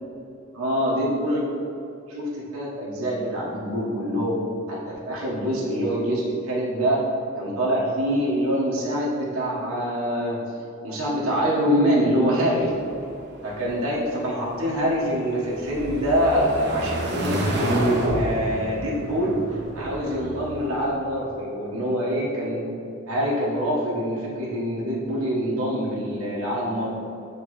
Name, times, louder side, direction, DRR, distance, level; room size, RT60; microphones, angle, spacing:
voice 1, 0.6-1.4 2.1-4.4 4.7-7.0 7.3-10.4 10.8-12.7 13.4-19.4 19.7-22.6 23.1-26.9, equal, 85° right, -6 dB, 1.3 m, -25 dB
sound 1, 12.6-20.9, right 1 dB, 55° right, 0.9 m, -29 dB
9.4 x 3.3 x 3.1 m, 2.8 s
head